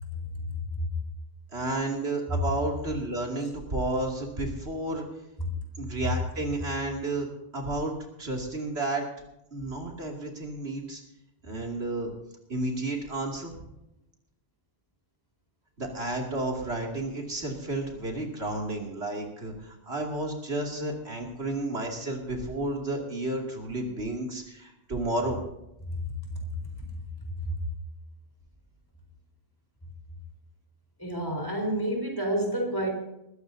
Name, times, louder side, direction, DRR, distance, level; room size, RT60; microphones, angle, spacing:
voice 1, 0.1-0.9 5.4-5.5 25.9-26.6 27.4-27.6 31.0-32.9, equal, 20° left, 1 dB, 4.2 m, -30 dB
voice 2, 1.5-5.1 5.8-7.3 7.5-7.9 8.2-9.0 9.5-11.0 11.4-12.1 12.5-13.5 15.8-25.4, right 2 dB, 80° right, 0 dB, 2.9 m, -31 dB
21.0 x 14.5 x 2.8 m, 0.88 s
omnidirectional pair, 1.1 m